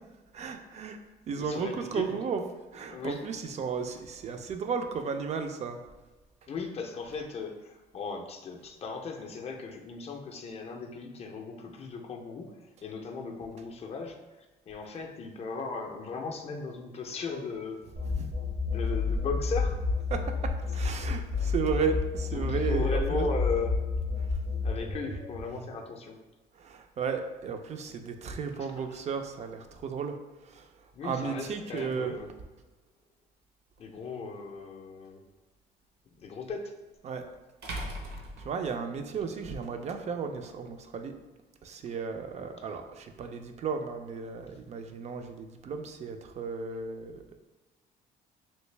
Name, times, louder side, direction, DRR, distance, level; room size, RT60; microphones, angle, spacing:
voice 1, 0.3-1.0 1.3-2.4 2.7-5.8 18.2-18.3 20.1-23.3 24.2-24.4 26.5-30.2 30.4-30.7 31.0-32.1 37.0-37.2 38.4-41.1 41.6-47.4, right 5 dB, 40° right, 6 dB, 0.4 m, -34 dB
voice 2, 1.4-2.1 2.9-3.2 6.5-12.5 12.8-14.2 14.7-17.8 18.6-19.8 22.3-23.8 24.6-26.2 28.6-29.0 30.9-32.3 33.8-35.2 36.2-36.7, left 4 dB, 40° left, 3 dB, 0.4 m, -37 dB
sound 1, 18.0-25.6, left 4 dB, 90° right, 1.5 m, -30 dB
sound 2, 33.8-33.9 36.5-36.6 37.6-39.2, right 1 dB, 70° right, 0.8 m, -39 dB
3.1 x 2.6 x 3.2 m, 1.2 s
cardioid pair, 110°, 17 cm